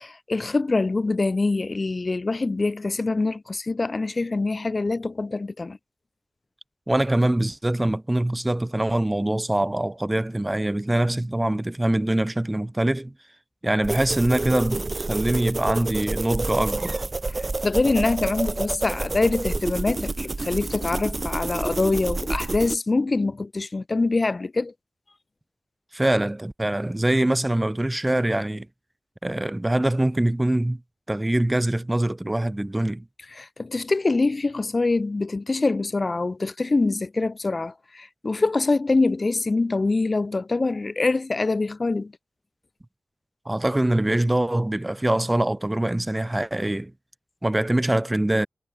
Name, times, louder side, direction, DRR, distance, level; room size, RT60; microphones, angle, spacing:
voice 1, 0.0-5.8 17.4-24.7 33.3-42.1, left 3 dB, 35° left, 3.9 m, -24 dB
voice 2, 6.9-13.1 13.6-17.0 25.9-28.7 29.2-30.8 31.1-33.0 43.4-46.9 47.4-48.5, right 1 dB, 15° right, 1.5 m, -23 dB
sound 1, 13.8-22.8, right 3 dB, 30° right, 4.5 m, -29 dB
wide cardioid pair, 110°, 0 cm